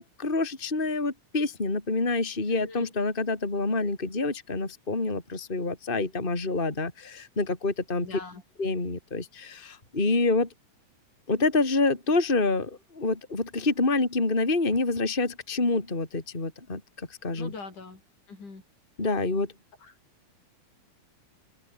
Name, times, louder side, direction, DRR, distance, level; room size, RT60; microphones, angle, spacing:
voice 1, 0.0-8.2 8.6-10.5 11.3-17.5 19.0-19.5, left 3 dB, 15° left, 3.5 m, -27 dB
voice 2, 2.5-2.9 8.0-8.4 17.4-18.0 18.3-18.6 19.8-19.9, left 4 dB, 75° left, 7.8 m, -42 dB
open air
omnidirectional pair, 3.6 m